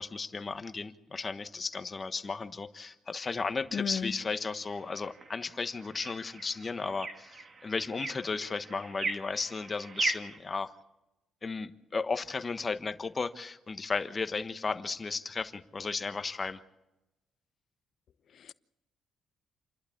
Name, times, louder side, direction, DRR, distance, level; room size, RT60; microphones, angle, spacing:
voice 1, 0.0-10.7 11.4-16.6, left 4 dB, 30° left, 1.2 m, -35 dB
sound 1, 3.3-10.4, right 3 dB, 40° right, 2.2 m, -40 dB
voice 2, 3.7-4.1 18.4-18.5, left 7 dB, 60° left, 0.8 m, -33 dB
28.5 x 11.5 x 8.5 m
cardioid pair, 90°, 0 cm